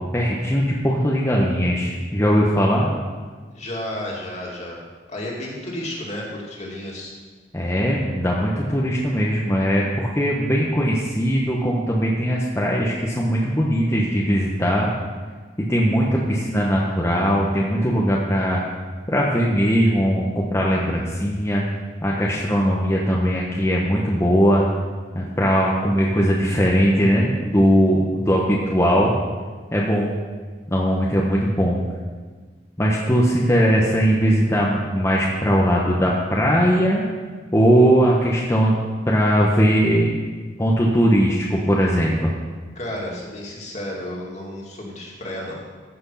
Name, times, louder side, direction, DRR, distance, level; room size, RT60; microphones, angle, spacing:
voice 1, 0.0-2.9 7.5-14.9 15.6-18.6 19.1-21.6 22.0-24.7 25.1-29.1 29.7-30.1 30.7-31.8 32.8-37.0 37.5-38.7 39.1-40.1 40.6-42.3, equal, 15° left, -4 dB, 1.1 m, -19 dB
voice 2, 3.5-4.8 5.1-7.1 42.8-45.6, left 1 dB, 40° left, -3 dB, 2.6 m, -32 dB
14.5 x 6.2 x 5.7 m, 1.4 s
head